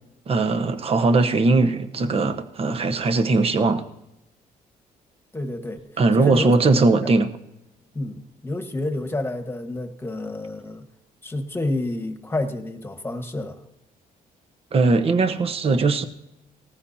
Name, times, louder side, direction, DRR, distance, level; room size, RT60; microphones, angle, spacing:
voice 1, 0.3-3.8 6.0-7.3 14.7-16.0, right 3 dB, 40° right, 1.1 m, -20 dB
voice 2, 5.3-5.8 6.2-7.0 7.9-10.8 11.2-13.6, left 2 dB, 15° left, 1.5 m, -29 dB
19.0 x 15.0 x 2.8 m
cardioid pair, 105°, 15 cm